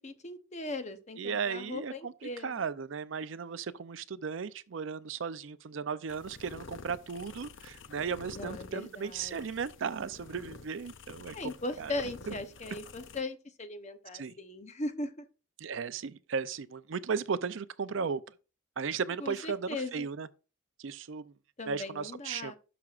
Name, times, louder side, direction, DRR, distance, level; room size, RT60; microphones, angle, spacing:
voice 1, 0.0-2.6 8.3-9.4 11.3-15.2 19.2-20.1 21.6-22.6, left 2 dB, 35° left, 0.8 m, -39 dB
voice 2, 1.2-11.5 11.8-11.9 12.3-12.4 14.1-14.3 15.6-18.2 18.8-20.3 20.8-21.3 21.7-22.6, right 6 dB, 70° right, 0.5 m, -36 dB
sound 1, 6.1-13.2, left 4 dB, 65° left, 0.6 m, -49 dB
12.0 x 6.0 x 2.5 m
head